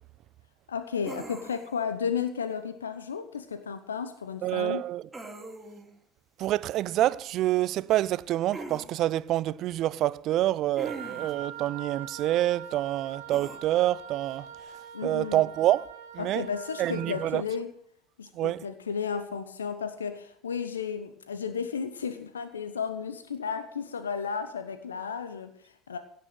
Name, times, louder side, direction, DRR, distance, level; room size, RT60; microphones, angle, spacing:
voice 1, 0.7-4.8 14.9-15.4 16.2-17.7 18.2-26.0, left 6 dB, 85° left, 1.0 m, -33 dB
sound 1, 1.0-1.8 5.1-5.9 8.5-8.9 10.8-11.4 13.3-13.6, right 2 dB, 10° right, 3.5 m, -41 dB
voice 2, 4.4-5.0 6.4-14.5 15.0-15.9 16.1-16.4 16.8-17.4 18.3-18.6, right 14 dB, 55° right, 0.5 m, -27 dB
Wind instrument woodwind instrument, 10.8-17.4, right 8 dB, 80° right, 2.0 m, -43 dB
16.5 x 6.7 x 8.1 m
hypercardioid pair, 65°, 0 cm